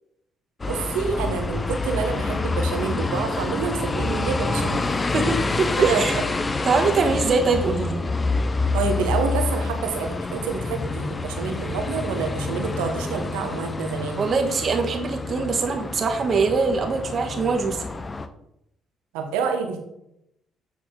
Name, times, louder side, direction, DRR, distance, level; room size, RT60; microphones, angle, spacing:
sound 1, 0.6-18.3, left 3 dB, 30° left, 0.7 m, -27 dB
voice 1, 0.6-4.9 5.9-6.2 8.7-14.2 19.1-19.8, right 5 dB, 90° right, 4 dB, 1.2 m, -28 dB
voice 2, 5.1-6.2 6.6-8.0 14.2-17.8, right 4 dB, 50° right, 3 dB, 1.5 m, -23 dB
9.0 x 4.9 x 3.8 m, 0.80 s
supercardioid pair, 60°, 0 cm